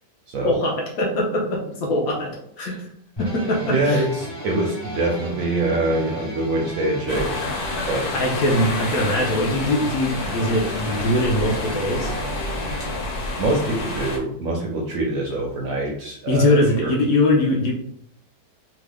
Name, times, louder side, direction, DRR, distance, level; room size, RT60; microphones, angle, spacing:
voice 1, 0.4-2.3 2.6-2.9 3.2-4.0 8.1-12.1 16.3-17.7, left 1 dB, 65° left, -1 dB, 0.9 m, -22 dB
sound 1, 3.2-13.0, left 1 dB, 25° left, 0.5 m, -34 dB
voice 2, 3.6-7.4 7.9-8.1 13.4-16.9, right 2 dB, 70° right, 0 dB, 0.8 m, -24 dB
sound 2, 7.1-14.2, left 2 dB, 80° left, 1.4 m, -29 dB
3.0 x 2.4 x 3.3 m, 0.68 s
omnidirectional pair, 1.9 m